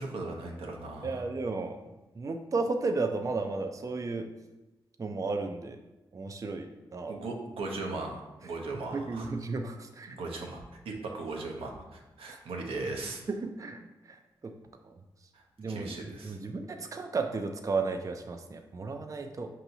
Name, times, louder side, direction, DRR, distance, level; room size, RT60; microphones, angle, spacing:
voice 1, 0.0-1.2 7.1-9.3 10.1-13.2 15.7-16.4, right 3 dB, 85° right, 1 dB, 0.6 m, -38 dB
voice 2, 1.0-1.8 2.2-4.3 5.0-5.8 6.1-7.1 8.9-10.1 13.3-13.8 14.4-14.5 15.6-19.5, right 3 dB, 35° right, 5 dB, 0.4 m, -33 dB
5.3 x 2.8 x 2.6 m, 1.1 s
supercardioid pair, 40°, 9 cm